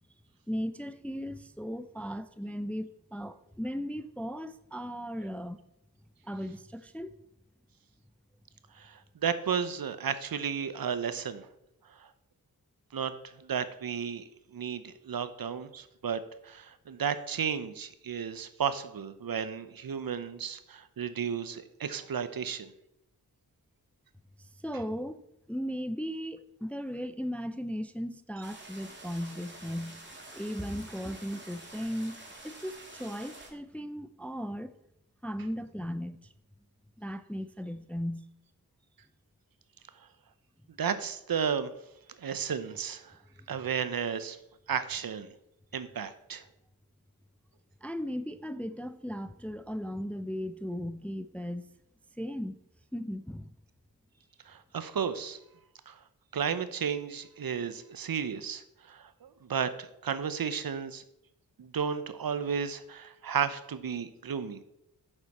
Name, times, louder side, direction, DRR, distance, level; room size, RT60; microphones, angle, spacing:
voice 1, 0.5-5.6 6.2-7.2 24.4-30.0 30.3-34.8 35.2-36.3 37.0-38.3 43.4-43.5 47.8-51.7 52.2-52.6 52.9-53.5, equal, 5° left, 0.4 m, -37 dB
voice 2, 8.7-11.5 12.0-12.1 12.9-14.2 14.5-22.7 40.8-41.7 42.2-43.1 43.5-44.4 44.7-45.3 45.7-46.4 54.5-55.4 55.9-56.0 56.3-61.0 61.6-64.6, right 7 dB, 65° right, 0.8 m, -33 dB
sound 1, 28.4-33.5, right 2 dB, 30° right, 2.2 m, -48 dB
8.7 x 6.8 x 4.3 m
cardioid pair, 55°, 38 cm